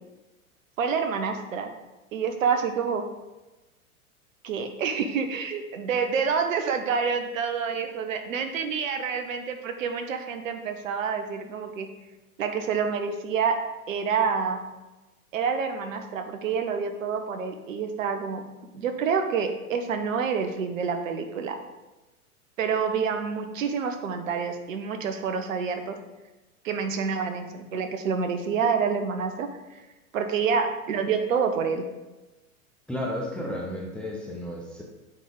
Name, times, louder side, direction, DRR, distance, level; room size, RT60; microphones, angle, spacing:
voice 1, 0.8-1.7 2.1-3.0 4.4-11.9 12.4-13.6 13.9-14.7 15.3-18.4 18.7-21.6 22.6-26.0 26.6-29.8 30.1-31.8, right 6 dB, 60° right, 7 dB, 0.9 m, -28 dB
voice 2, 32.9-34.8, left 1 dB, ahead, -2 dB, 0.5 m, -33 dB
8.3 x 3.4 x 3.8 m, 1.1 s
figure-of-eight pair, 95°, 44 cm